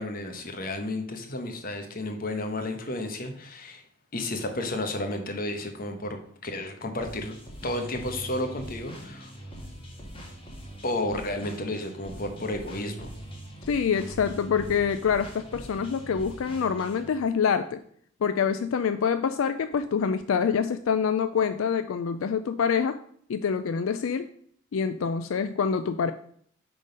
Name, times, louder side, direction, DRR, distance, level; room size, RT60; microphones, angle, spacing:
voice 1, 0.0-3.8 4.1-7.3 7.6-9.3 10.8-13.1, left 1 dB, 45° left, 6 dB, 1.0 m, -32 dB
sound 1, 7.0-17.1, right 1 dB, 25° left, 1.4 m, -42 dB
voice 2, 13.7-17.8 18.2-23.0 23.3-24.3 24.7-26.1, left 6 dB, 75° left, 10 dB, 0.4 m, -26 dB
9.0 x 3.8 x 5.3 m, 0.62 s
head